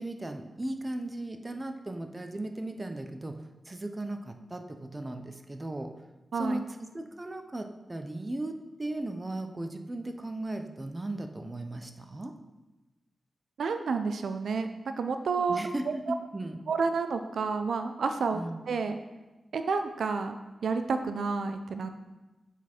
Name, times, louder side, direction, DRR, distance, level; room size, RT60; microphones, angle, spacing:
voice 1, 0.0-3.4 3.7-5.9 6.3-12.3 15.5-16.6 18.3-18.6, right 1 dB, 20° right, 6 dB, 0.5 m, -37 dB
voice 2, 13.6-16.1 16.7-18.4 18.7-19.0 19.5-22.0, right 4 dB, 75° right, 8 dB, 0.4 m, -30 dB
7.0 x 4.1 x 4.3 m, 1.1 s
wide cardioid pair, 135°, 0 cm